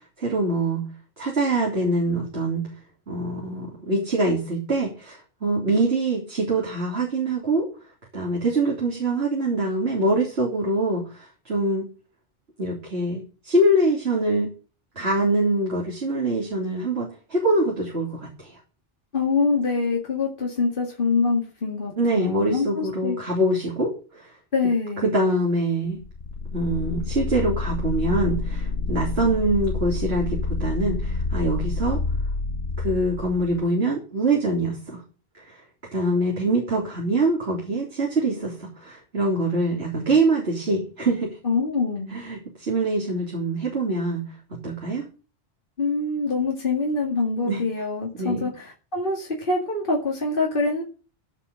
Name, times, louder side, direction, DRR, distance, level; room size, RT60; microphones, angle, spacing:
voice 1, 0.2-0.8 1.2-2.6 3.1-7.7 8.1-11.9 12.6-14.5 15.0-18.6 22.0-24.3 25.0-26.0 26.5-32.0 32.8-35.0 35.4-35.6 35.9-41.4 42.0-44.2 44.5-45.1 47.5-47.6 48.2-48.5, right 2 dB, 75° right, -3 dB, 3.8 m, -24 dB
voice 2, 19.1-23.2 24.5-25.1 41.4-42.2 45.8-50.8, left 4 dB, 55° left, -1 dB, 2.4 m, -25 dB
sound 1, 26.0-33.7, left 3 dB, 75° left, 1.5 m, -28 dB
15.5 x 5.2 x 7.0 m, 0.36 s
omnidirectional pair, 1.1 m